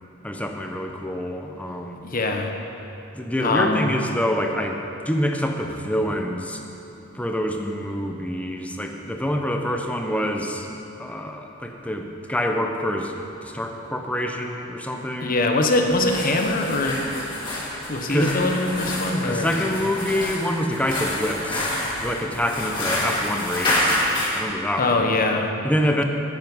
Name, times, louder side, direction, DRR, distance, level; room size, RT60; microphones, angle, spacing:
voice 1, 0.2-2.0 3.1-6.6 7.1-10.7 11.0-13.1 13.4-15.4 18.1-18.3 19.2-21.7 22.0-24.0 24.3-25.1 25.6-26.0, equal, 5° left, 3 dB, 0.8 m, -26 dB
voice 2, 2.0-2.5 3.4-3.8 15.2-17.0 17.9-19.5 24.8-25.5, left 2 dB, 45° left, 3 dB, 1.0 m, -22 dB
sound 1, 15.8-24.4, left 1 dB, 25° left, 2.2 m, -28 dB
11.0 x 9.6 x 5.4 m, 3.0 s
head